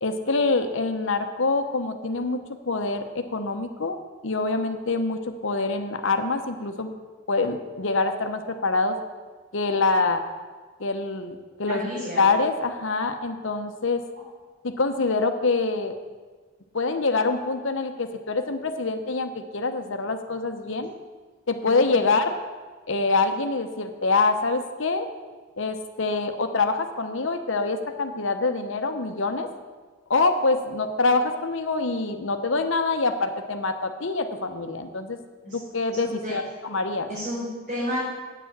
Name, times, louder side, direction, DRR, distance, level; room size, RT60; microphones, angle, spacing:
voice 1, 0.0-4.0 4.2-6.9 7.3-9.0 9.5-10.2 10.8-14.0 14.6-15.9 16.7-20.9 21.5-22.3 22.9-25.1 25.6-29.5 30.1-35.2 35.5-37.1, left 3 dB, 60° left, 7 dB, 0.9 m, -25 dB
voice 2, 11.7-12.2 35.4-35.6 35.9-36.3 37.1-38.0, equal, 45° right, -10 dB, 4.0 m, -31 dB
9.0 x 7.2 x 7.3 m, 1.4 s
head